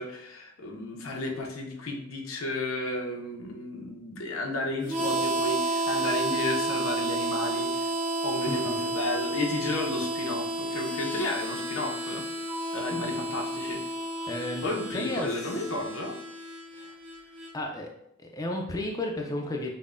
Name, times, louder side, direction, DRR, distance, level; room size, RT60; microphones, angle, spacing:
voice 1, 0.0-7.9 8.2-12.3 12.7-13.8 14.6-16.2, left 2 dB, 85° left, 2 dB, 0.6 m, -33 dB
Harmonica, 4.9-17.5, right 2 dB, 35° right, 0.6 m, -31 dB
voice 2, 14.3-14.7 14.9-15.5 16.7-17.0 17.5-17.9 18.2-19.7, left 1 dB, 15° left, 1 dB, 0.3 m, -33 dB
5.3 x 2.1 x 2.4 m, 0.78 s
head